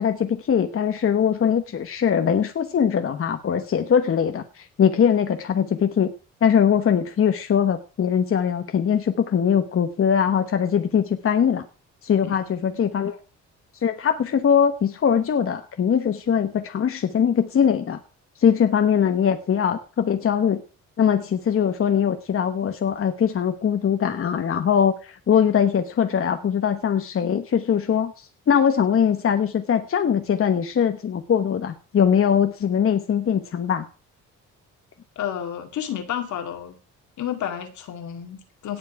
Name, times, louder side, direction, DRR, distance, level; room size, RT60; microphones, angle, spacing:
voice 1, 0.0-6.1 6.4-11.6 12.0-13.2 13.8-18.0 18.4-20.6 21.0-33.8, left 8 dB, 45° left, 7 dB, 1.2 m, -21 dB
voice 2, 12.2-12.8 35.2-36.8 37.2-38.8, left 10 dB, 70° left, 6 dB, 2.4 m, -31 dB
17.5 x 7.6 x 4.8 m, 0.37 s
cardioid pair, 90°, 30 cm